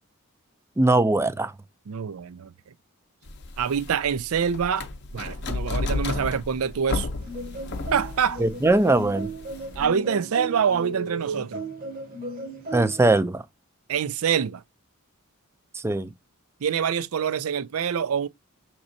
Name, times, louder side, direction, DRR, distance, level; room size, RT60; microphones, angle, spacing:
voice 1, 0.8-1.5 8.4-9.3 12.7-13.4 15.7-16.1, right 2 dB, 10° right, 0.3 m, -21 dB
voice 2, 1.9-2.5 3.6-4.9 5.1-7.1 7.9-8.4 9.8-11.6 13.9-14.6 16.6-18.3, right 7 dB, 75° right, 0.4 m, -25 dB
sound 1, 3.3-9.9, left 3 dB, 50° left, 0.6 m, -32 dB
sound 2, 7.2-13.0, right 2 dB, 40° right, 1.0 m, -35 dB
6.1 x 3.0 x 2.6 m
head